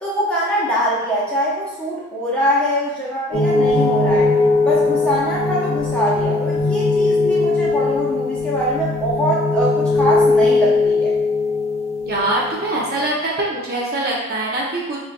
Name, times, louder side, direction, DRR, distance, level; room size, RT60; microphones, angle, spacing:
voice 1, 0.0-4.3 4.6-11.2, equal, 5° left, -8 dB, 0.8 m, -23 dB
sound 1, 3.3-13.0, left 3 dB, 30° left, 0.4 m, -19 dB
voice 2, 12.0-15.0, right 1 dB, 45° right, -4 dB, 0.6 m, -23 dB
5.0 x 2.4 x 2.2 m, 1.1 s
head